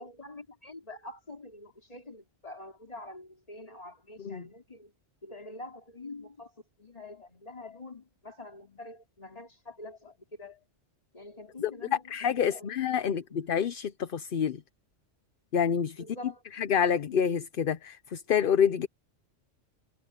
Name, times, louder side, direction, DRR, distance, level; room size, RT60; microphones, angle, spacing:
voice 1, 0.0-4.9 5.2-6.5 6.8-10.6 11.1-13.2 16.0-16.4, left 2 dB, 30° left, 3.3 m, -46 dB
voice 2, 12.1-14.6 15.5-16.0 16.6-18.9, left 8 dB, 50° left, 0.8 m, -27 dB
omnidirectional pair, 1.2 m